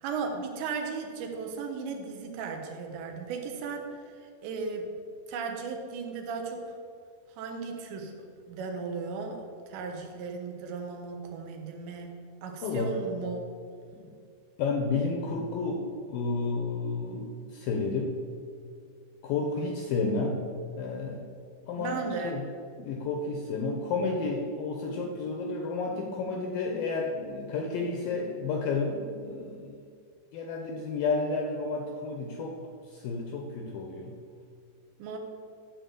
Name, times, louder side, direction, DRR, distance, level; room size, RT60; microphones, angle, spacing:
voice 1, 0.0-3.9 4.2-4.9 5.3-6.6 7.4-8.1 8.5-13.4 21.8-22.4 35.0-35.2, right 5 dB, 85° right, 3 dB, 3.4 m, -36 dB
voice 2, 12.6-12.9 13.9-14.1 14.6-18.1 19.2-20.4 20.8-21.2 21.7-22.4 22.8-29.8 30.3-32.6 32.9-34.1, left 3 dB, 75° left, 1 dB, 2.1 m, -31 dB
12.0 x 4.4 x 7.8 m, 2.2 s
omnidirectional pair, 5.0 m